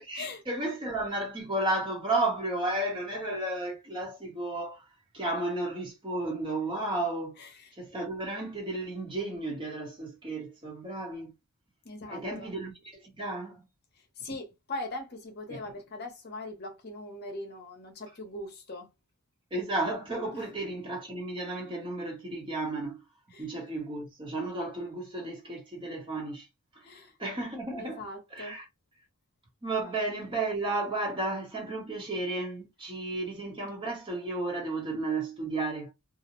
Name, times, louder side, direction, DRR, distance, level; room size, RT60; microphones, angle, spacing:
voice 1, 0.1-4.8 5.1-7.4 7.8-11.3 12.1-13.6 15.5-15.6 19.5-23.0 23.4-26.5 27.2-28.0 28.3-28.6 29.6-35.9, right 2 dB, 20° right, 0.8 m, -33 dB
voice 2, 7.4-7.7 11.8-12.5 14.2-18.9 20.3-20.5 23.3-23.5 26.8-27.1 27.8-28.6 29.8-29.9, left 2 dB, 45° left, 0.7 m, -41 dB
2.5 x 2.0 x 2.9 m
head